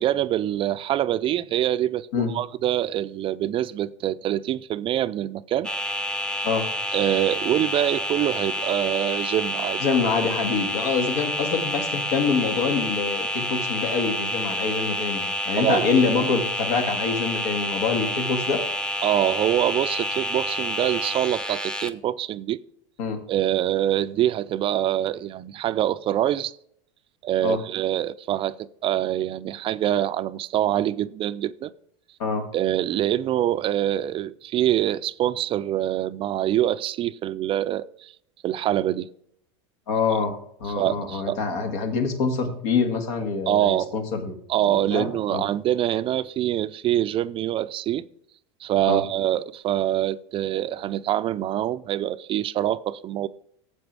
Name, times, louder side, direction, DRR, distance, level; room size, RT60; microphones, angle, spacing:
voice 1, 0.0-5.7 6.9-9.8 15.6-15.9 19.0-22.6 23.3-26.5 27.2-28.6 28.8-31.7 32.5-38.1 38.4-39.1 40.7-41.4 43.5-43.9 44.5-48.0 48.6-53.3, right 12 dB, 35° right, 0.4 m, -25 dB
sound 1, 5.6-21.9, equal, 5° left, 0.7 m, -28 dB
voice 2, 9.8-18.6 23.0-23.2 27.4-27.6 32.2-32.5 39.9-45.4 48.9-49.0, left 5 dB, 75° left, 2.2 m, -25 dB
9.6 x 7.5 x 4.7 m
supercardioid pair, 110°, 15 cm